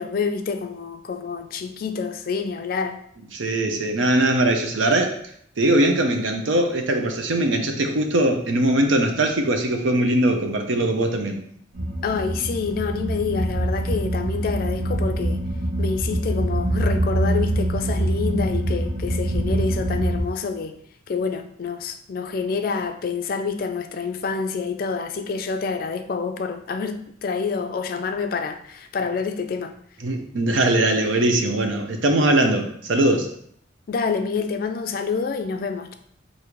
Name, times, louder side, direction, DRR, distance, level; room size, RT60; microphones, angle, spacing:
voice 1, 0.0-3.0 12.0-15.4 15.8-20.8 21.1-29.7 33.9-35.9, left 5 dB, 50° left, 0.3 m, -27 dB
voice 2, 3.3-5.2 5.6-11.4 30.0-33.3, right 1 dB, 80° right, 0.6 m, -21 dB
sound 1, 11.7-20.2, right 1 dB, 50° right, 1.5 m, -24 dB
4.9 x 2.7 x 3.0 m
head